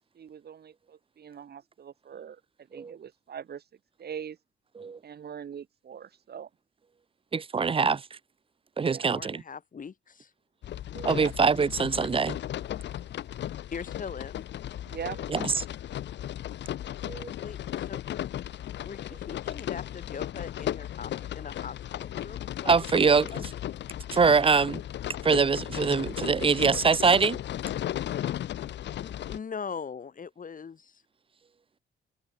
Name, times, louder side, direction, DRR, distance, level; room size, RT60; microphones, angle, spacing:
voice 1, 0.1-3.6 4.0-4.4 5.0-6.5 8.8-9.1 11.0-11.3 14.9-15.2, right 8 dB, 55° right, 5.3 m, -42 dB
voice 2, 7.3-8.1 8.8-9.4 10.9-12.4 15.3-15.6 17.1-17.3 22.7-23.5 24.1-24.8 25.2-27.4, right 5 dB, 25° right, 0.8 m, -24 dB
voice 3, 9.1-10.3 13.7-14.4 17.4-18.0 18.8-23.4 29.0-31.0, left 6 dB, 40° left, 6.2 m, -41 dB
sound 1, 10.6-29.4, left 12 dB, 65° left, 0.8 m, -36 dB
cardioid pair, 90°, 20 cm